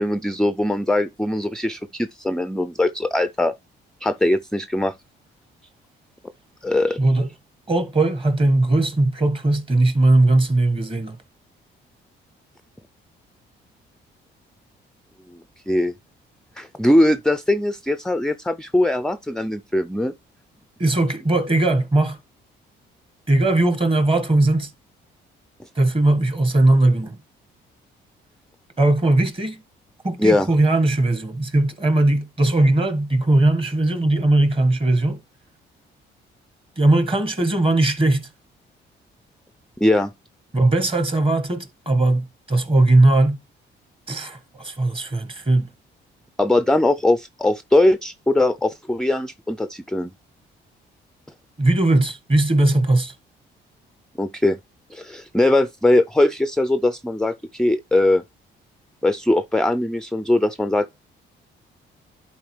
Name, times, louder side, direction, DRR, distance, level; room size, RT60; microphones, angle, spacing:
voice 1, 0.0-3.5 4.0-4.9 6.6-7.0 15.3-15.4 15.7-15.9 16.6-20.1 25.6-25.7 30.2-30.5 39.8-40.1 46.4-50.1 54.2-54.6 54.9-58.2 59.0-61.0, left 1 dB, 5° left, 0.4 m, -20 dB
voice 2, 7.0-7.3 7.7-11.2 20.8-22.2 23.3-24.7 25.7-27.2 28.8-29.6 30.0-35.2 36.8-38.3 40.5-43.4 44.1-45.7 51.6-53.1, right 2 dB, 25° right, 1.4 m, -19 dB
11.5 x 4.1 x 3.2 m
cardioid pair, 90°, 20 cm